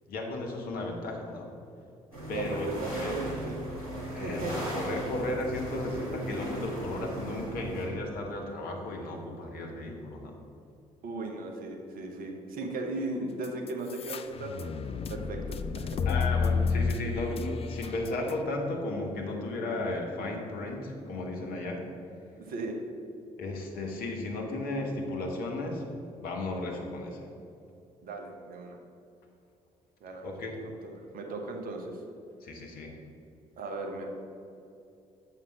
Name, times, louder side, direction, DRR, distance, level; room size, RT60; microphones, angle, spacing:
voice 1, 0.1-1.5 2.3-3.2 4.1-10.4 16.0-21.9 22.1-22.4 23.4-25.8 26.2-27.3 30.2-30.5 32.4-33.0, left 2 dB, 55° left, 1 dB, 1.4 m, -34 dB
sound 1, 2.1-7.9, right 1 dB, 90° right, 1.6 m, -37 dB
voice 2, 2.3-3.6 4.2-4.5 11.0-14.7 15.1-16.0 22.4-22.8 28.0-28.8 30.0-30.3 30.6-32.0 33.6-34.1, right 2 dB, 55° right, 2 dB, 1.2 m, -37 dB
sound 2, 13.4-18.4, left 5 dB, 35° left, 0.4 m, -30 dB
7.4 x 5.6 x 6.3 m, 2.6 s
figure-of-eight pair, 45°, 18 cm